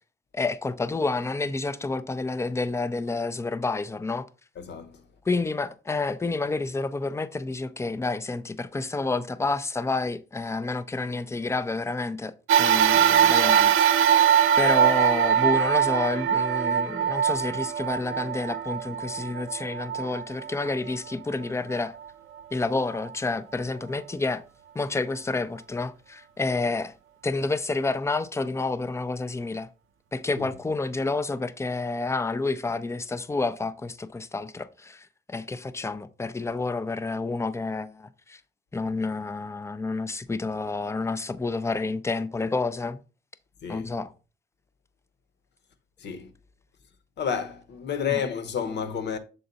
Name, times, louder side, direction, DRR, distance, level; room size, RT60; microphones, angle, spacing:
voice 1, 0.3-4.3 5.3-14.2 14.6-21.9 22.5-24.4 24.7-27.0 27.2-29.7 30.1-38.4 38.7-43.0 43.7-44.1 48.1-48.2, left 3 dB, 15° left, 0.5 m, -29 dB
voice 2, 4.6-5.0 30.4-30.5 43.6-43.9 46.0-46.3 47.2-49.2, left 7 dB, 60° left, 1.0 m, -30 dB
sound 1, 12.5-21.1 21.7-21.8 22.9-23.0, right 9 dB, 85° right, 0.6 m, -22 dB
6.8 x 3.8 x 4.0 m
cardioid pair, 90°, 20 cm